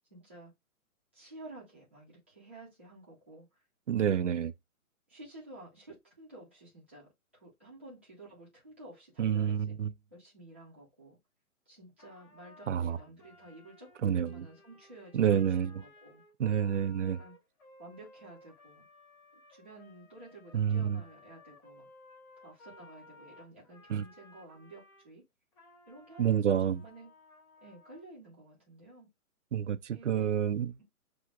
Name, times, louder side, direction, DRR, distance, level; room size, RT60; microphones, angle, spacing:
voice 1, 0.1-0.5 1.1-3.5 4.1-4.4 5.1-9.8 10.1-11.2 11.7-16.2 17.0-17.3 17.8-18.8 19.5-21.9 22.4-25.2 25.9-27.1 27.6-29.1 29.9-30.3, right 1 dB, 10° right, 0.6 m, -52 dB
voice 2, 3.9-4.5 9.2-9.9 12.7-13.0 14.0-14.4 15.1-15.7 16.4-17.2 20.5-21.0 23.9-24.0 26.2-26.8 29.5-30.7, right 9 dB, 60° right, 0.5 m, -28 dB
Trumpet, 12.0-25.1 25.5-28.1, left 2 dB, 20° left, 2.6 m, -58 dB
5.9 x 2.8 x 2.3 m
hypercardioid pair, 175°, 43 cm